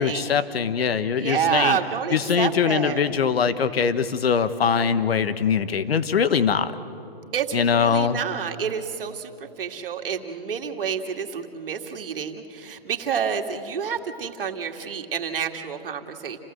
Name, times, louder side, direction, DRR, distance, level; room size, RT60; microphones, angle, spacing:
voice 1, 0.0-1.8 2.1-6.7 7.5-8.2, left 6 dB, 80° left, 12 dB, 1.3 m, -22 dB
voice 2, 1.1-3.0 7.3-16.4, right 7 dB, 65° right, 4 dB, 2.3 m, -28 dB
29.0 x 16.0 x 7.8 m, 2.7 s
hypercardioid pair, 165°, 30 cm